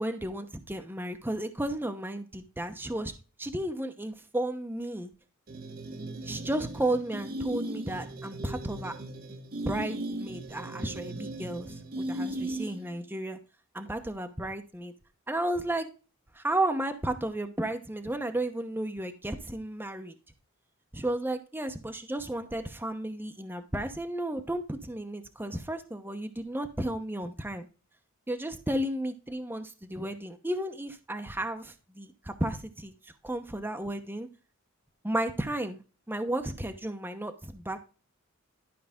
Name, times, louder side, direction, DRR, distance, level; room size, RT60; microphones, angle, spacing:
voice 1, 0.0-3.1 3.4-5.1 6.2-8.9 9.7-13.4 13.7-14.9 15.3-15.9 16.3-20.1 20.9-27.7 28.3-32.9 33.2-34.3 35.0-35.8 36.1-37.8, right 1 dB, 10° right, 6 dB, 0.8 m, -33 dB
sound 1, 5.5-13.0, right 1 dB, 45° right, 1.2 m, -37 dB
12.0 x 4.9 x 3.5 m, 0.33 s
head